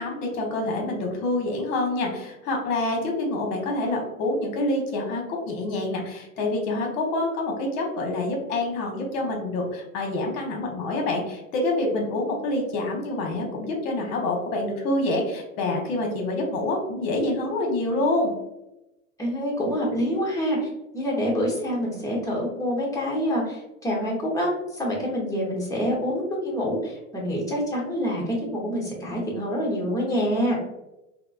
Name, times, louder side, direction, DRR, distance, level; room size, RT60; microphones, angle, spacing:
voice 1, 0.0-18.3, left 2 dB, 45° left, 1 dB, 1.0 m, -27 dB
voice 2, 19.2-30.6, equal, 10° left, -4 dB, 0.9 m, -26 dB
3.5 x 2.1 x 2.4 m, 0.92 s
figure-of-eight pair, 80°, 40 cm